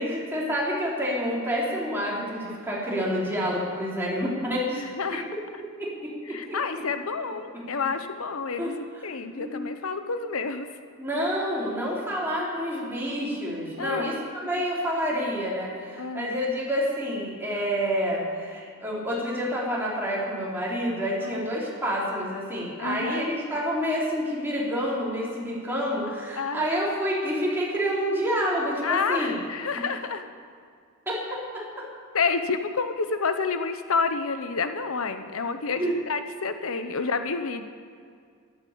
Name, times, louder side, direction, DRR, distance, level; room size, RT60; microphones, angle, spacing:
voice 1, 0.0-4.8 5.1-5.2 5.6-6.6 8.6-8.7 9.4-9.6 11.0-29.3 31.1-31.8 35.8-35.9, equal, 10° right, -6 dB, 4.3 m, -28 dB
voice 2, 4.7-5.2 6.3-10.7 13.8-14.1 16.0-16.4 21.2-21.4 22.8-23.3 26.4-26.7 28.8-30.2 32.1-37.6, left 4 dB, 75° left, 9 dB, 0.8 m, -29 dB
13.0 x 12.0 x 8.6 m, 2.1 s
head